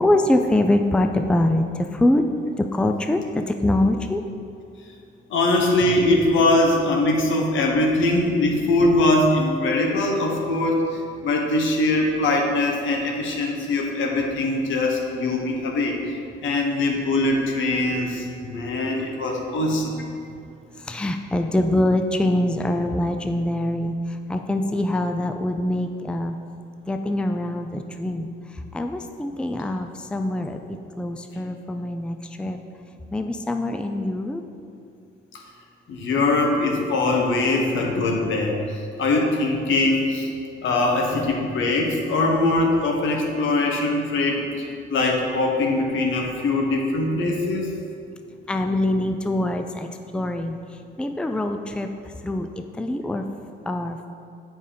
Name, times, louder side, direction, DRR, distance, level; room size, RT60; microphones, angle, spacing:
voice 1, 0.0-1.6 2.0-2.2 2.7-4.2 20.9-23.9 24.3-26.3 26.9-28.3 28.7-30.6 31.0-32.6 33.1-34.4 48.5-49.9 50.1-50.6 51.0-51.9 52.2-52.5 52.8-53.2 53.7-54.1, left 1 dB, 5° left, 6 dB, 0.4 m, -23 dB
voice 2, 5.3-16.1 16.4-19.9 35.9-38.6 39.0-40.3 40.6-44.4 44.9-47.7, left 2 dB, 75° left, 1 dB, 1.3 m, -22 dB
7.5 x 5.3 x 5.1 m, 2.5 s
cardioid pair, 90°, 20 cm